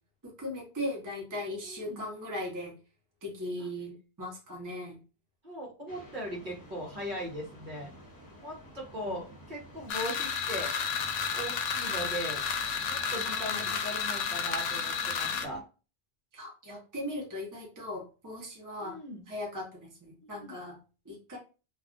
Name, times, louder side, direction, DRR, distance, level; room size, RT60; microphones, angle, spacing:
voice 1, 0.2-2.7 3.2-5.0 9.0-9.2 13.2-13.7 16.3-19.0 19.3-20.8 21.0-21.4, left 1 dB, 20° right, -2 dB, 0.8 m, -38 dB
voice 2, 1.6-2.0 3.6-3.7 5.4-7.9 8.4-10.7 11.3-12.4 12.8-15.6 18.8-19.2 20.2-20.5, equal, 55° right, -2 dB, 1.0 m, -39 dB
sound 1, 5.9-15.6, equal, 20° left, 0.9 m, -50 dB
sound 2, 9.9-15.5, left 6 dB, 75° left, 0.8 m, -32 dB
2.3 x 2.3 x 3.7 m, 0.34 s
omnidirectional pair, 1.1 m